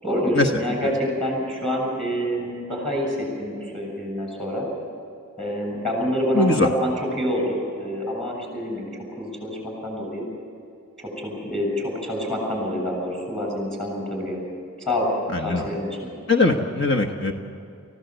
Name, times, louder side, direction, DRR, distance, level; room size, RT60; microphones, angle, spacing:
voice 1, 0.0-4.7 5.4-10.2 11.0-14.4 14.8-15.1 15.4-16.1, equal, ahead, 1 dB, 7.4 m, -27 dB
voice 2, 6.3-6.7 15.3-15.7 16.3-17.3, left 2 dB, 55° left, 4 dB, 1.3 m, -21 dB
29.5 x 16.0 x 8.1 m, 2.6 s
head